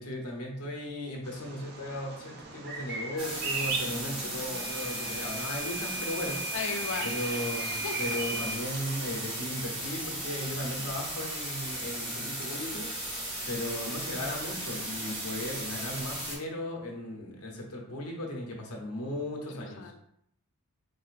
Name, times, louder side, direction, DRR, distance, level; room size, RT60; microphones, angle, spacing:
voice 1, 0.0-6.6 7.0-12.9 13.5-19.8, left 1 dB, 90° left, 0 dB, 0.8 m, -36 dB
Bird vocalization bird call bird song, 1.2-9.4, right 4 dB, 45° right, 0.4 m, -39 dB
sound 1, 3.2-16.4, right 1 dB, 20° right, 0.8 m, -36 dB
voice 2, 3.9-4.6 6.5-7.3 7.8-8.2 10.6-11.0 19.5-19.9, left 5 dB, 55° left, 5 dB, 0.4 m, -38 dB
Microwave oven / Alarm, 4.5-8.6, right 1 dB, 70° right, 0.8 m, -38 dB
3.9 x 2.7 x 2.5 m, 0.75 s
head